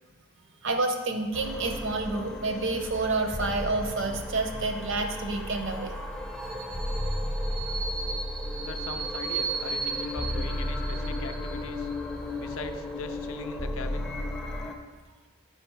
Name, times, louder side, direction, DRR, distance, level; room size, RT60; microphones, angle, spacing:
voice 1, 0.6-5.9 7.7-7.8, right 3 dB, 55° right, 5 dB, 0.6 m, -29 dB
sound 1, 1.3-14.8, equal, 5° left, 0.4 m, -33 dB
voice 2, 8.6-11.9 12.4-14.1, left 4 dB, 65° left, 8 dB, 0.4 m, -40 dB
5.7 x 4.9 x 4.5 m, 1.3 s
head